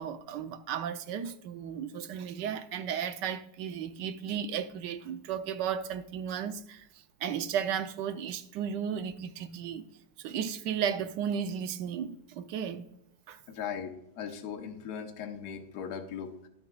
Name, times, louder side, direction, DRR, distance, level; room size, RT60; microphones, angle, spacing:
voice 1, 0.0-9.9 10.2-12.9 13.3-13.4, right 8 dB, 75° right, 1.2 m, -34 dB
voice 2, 13.5-16.5, left 7 dB, 60° left, 1.3 m, -39 dB
18.0 x 6.2 x 2.3 m
omnidirectional pair, 2.0 m